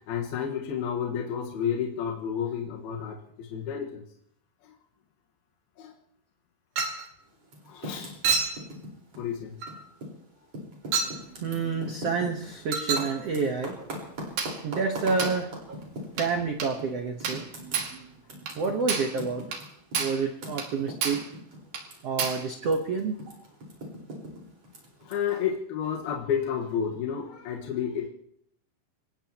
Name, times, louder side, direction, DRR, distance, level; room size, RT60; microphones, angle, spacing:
voice 1, 0.0-4.0 4.6-4.8 5.8-5.9 7.7-8.2 9.2-9.6 14.0-14.1 25.0-28.1, left 8 dB, 75° left, 0 dB, 3.3 m, -31 dB
Chink clink, 6.8-7.1 8.2-8.6 9.6-9.8 10.9-11.2 12.7-13.1 14.4-14.6 15.2-15.4 16.2-16.4 16.6-16.8 17.2-17.5 17.7-18.0 18.5-18.6 18.9-19.2 19.5-19.7 19.9-20.2 20.6-20.7 21.0-21.3 21.7-21.9 22.2-22.5, right 5 dB, 65° right, 3.8 m, -29 dB
Typing, 7.4-10.2 10.5-16.4 16.8-16.9 17.2-22.3 22.6-25.1, right 1 dB, 40° right, 5.4 m, -40 dB
voice 2, 10.9-15.9 16.2-19.4 20.0-21.2 22.0-23.1, right 4 dB, 80° right, 3 dB, 1.3 m, -30 dB
25.5 x 18.0 x 3.0 m, 0.73 s
omnidirectional pair, 4.7 m